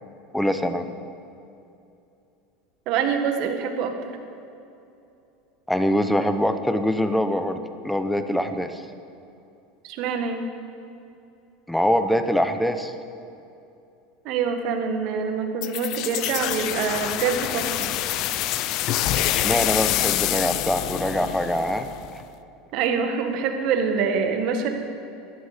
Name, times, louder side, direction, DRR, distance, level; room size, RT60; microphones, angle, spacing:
voice 1, 0.3-0.9 5.7-8.8 11.7-12.9 19.3-22.2, equal, ahead, 9 dB, 0.8 m, -24 dB
voice 2, 2.8-4.2 9.8-10.5 14.2-17.9 22.7-24.7, right 6 dB, 55° right, 5 dB, 1.6 m, -25 dB
sound 1, 15.6-22.2, left 13 dB, 55° left, 0.6 m, -26 dB
14.0 x 11.0 x 5.0 m, 2.7 s
supercardioid pair, 115°, 0 cm